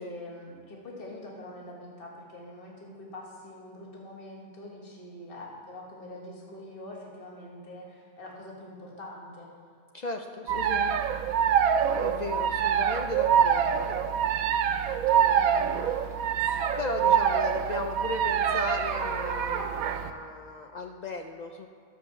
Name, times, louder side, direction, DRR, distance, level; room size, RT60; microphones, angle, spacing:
voice 1, 0.0-9.5 15.1-16.0 16.4-16.6, left 1 dB, 40° left, -2 dB, 1.9 m, -44 dB
voice 2, 9.9-10.9 12.0-13.9 16.8-21.7, left 3 dB, 90° left, 4 dB, 0.3 m, -36 dB
sound 1, 10.5-20.1, right 8 dB, 85° right, 1.1 m, -25 dB
11.0 x 6.6 x 7.0 m, 2.3 s
omnidirectional pair, 1.4 m